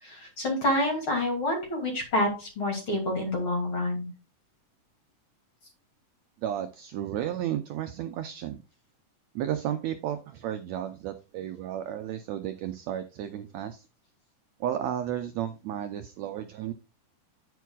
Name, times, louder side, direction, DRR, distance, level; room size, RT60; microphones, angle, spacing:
voice 1, 0.0-4.1, left 1 dB, 40° left, 1 dB, 3.2 m, -28 dB
voice 2, 6.4-8.6 9.3-13.9 14.6-16.7, right 10 dB, 75° right, 8 dB, 1.6 m, -33 dB
9.2 x 9.1 x 2.3 m, 0.30 s
omnidirectional pair, 3.8 m